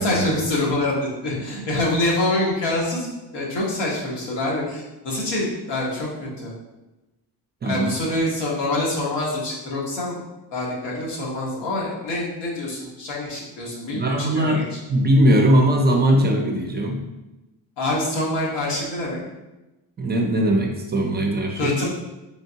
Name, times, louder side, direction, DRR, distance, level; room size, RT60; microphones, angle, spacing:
voice 1, 0.0-3.1 3.3-6.1 6.4-6.5 7.6-10.2 10.5-14.8 17.8-19.2 21.6-21.9, left 1 dB, 90° left, -4 dB, 1.3 m, -25 dB
voice 2, 7.6-7.9 13.9-17.0 20.0-21.7, right 1 dB, 25° right, 1 dB, 0.4 m, -20 dB
3.6 x 3.5 x 2.8 m, 1.0 s
cardioid pair, 135°, 41 cm